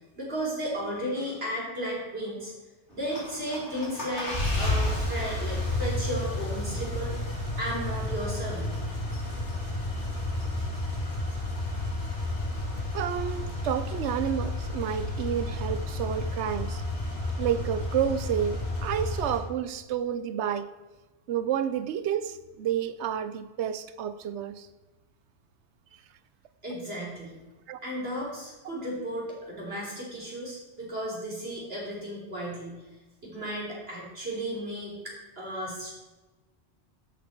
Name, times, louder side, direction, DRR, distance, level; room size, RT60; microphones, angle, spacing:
voice 1, 0.2-2.5 2.9-7.1 7.6-8.7 26.6-27.4 27.8-32.8 33.2-35.9, right 1 dB, 65° right, -3 dB, 3.9 m, -34 dB
sound 1, 2.9-19.4, left 2 dB, 90° left, 3.2 m, -31 dB
voice 2, 12.9-16.8 17.4-20.7 21.3-24.7 27.7-27.8, right 9 dB, 85° right, 13 dB, 0.9 m, -30 dB
13.0 x 8.3 x 4.5 m, 1.2 s
omnidirectional pair, 1.1 m